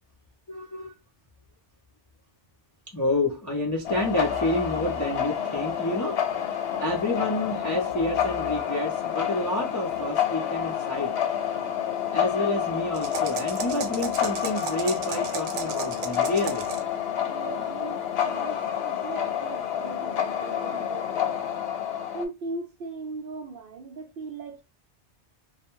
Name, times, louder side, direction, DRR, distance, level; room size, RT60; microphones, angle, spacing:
voice 1, 0.5-0.9 2.9-6.2 6.5-11.1 12.1-16.7, left 2 dB, 25° left, 0.4 m, -29 dB
sound 1, 3.8-22.3, left 9 dB, 70° left, 0.8 m, -29 dB
sound 2, 12.9-16.9, right 6 dB, 90° right, 0.9 m, -35 dB
voice 2, 17.3-21.4 22.1-24.6, right 3 dB, 60° right, 0.6 m, -39 dB
2.3 x 2.2 x 2.9 m
omnidirectional pair, 1.2 m